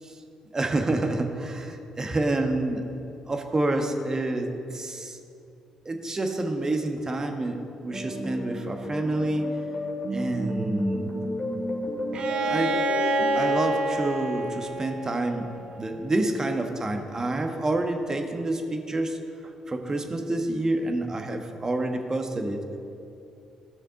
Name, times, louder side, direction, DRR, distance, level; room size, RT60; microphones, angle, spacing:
voice 1, 0.5-2.8 3.3-5.2 5.8-9.5 10.1-11.1 12.4-12.9 13.3-15.5 15.7-19.2 19.7-22.7, right 2 dB, 30° right, 4 dB, 1.3 m, -28 dB
sound 1, 7.9-13.4, equal, 40° left, 2.3 m, -32 dB
Bowed string instrument, 12.1-15.9, right 1 dB, 55° right, 0.8 m, -28 dB
16.0 x 6.3 x 3.8 m, 2.7 s
hypercardioid pair, 45°, 2 cm